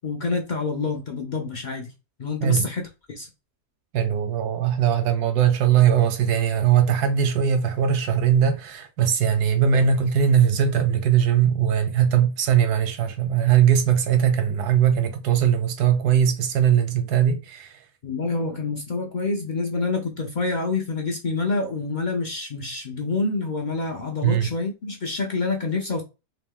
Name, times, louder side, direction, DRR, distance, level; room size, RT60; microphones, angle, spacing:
voice 1, 0.0-1.9 2.2-3.3 18.0-26.0, left 3 dB, 70° left, 0.4 m, -27 dB
voice 2, 3.9-17.8 24.2-24.5, right 8 dB, 85° right, 1.3 m, -20 dB
3.3 x 2.9 x 3.6 m
omnidirectional pair, 1.6 m